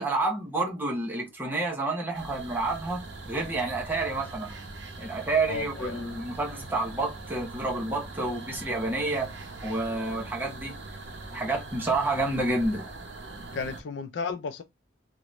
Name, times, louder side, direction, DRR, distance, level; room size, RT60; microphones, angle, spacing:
voice 1, 0.0-3.0 3.3-4.6 5.0-10.7 11.3-12.9, right 2 dB, 10° right, 0.8 m, -29 dB
sound 1, 2.1-13.8, right 2 dB, 65° right, 0.8 m, -43 dB
sound 2, 2.6-12.8, right 3 dB, 35° right, 0.4 m, -48 dB
voice 2, 5.5-6.1 13.5-14.6, left 5 dB, 65° left, 0.4 m, -34 dB
2.8 x 2.5 x 3.1 m
head